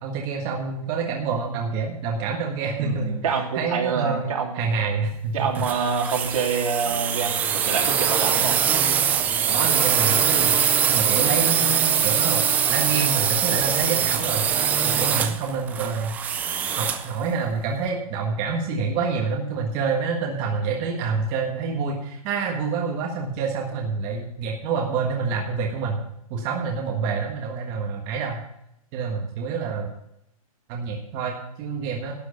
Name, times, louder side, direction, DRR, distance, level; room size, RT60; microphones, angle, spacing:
voice 1, 0.0-3.2 3.5-5.6 9.5-10.6 10.9-14.4 14.8-16.1 16.7-28.4 28.9-29.9 30.7-32.1, right 5 dB, 25° right, 0 dB, 1.6 m, -27 dB
voice 2, 2.8-4.6 5.3-8.6, right 5 dB, 65° right, 1 dB, 3.1 m, -26 dB
sound 1, 5.5-17.1, right 8 dB, 10° right, 0.4 m, -22 dB
12.0 x 8.0 x 6.5 m, 0.79 s
hypercardioid pair, 165°, 19 cm